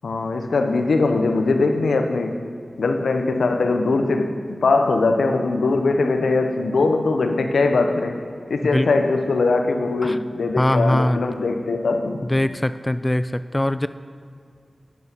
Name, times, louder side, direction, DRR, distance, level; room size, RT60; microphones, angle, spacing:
voice 1, 0.0-2.4 2.8-8.2 8.5-12.2, left 3 dB, 90° left, 6 dB, 0.7 m, -21 dB
voice 2, 10.6-11.3 12.2-13.9, left 1 dB, 20° left, 13 dB, 0.3 m, -21 dB
8.4 x 6.8 x 6.8 m, 2.2 s
cardioid pair, 45°, 0 cm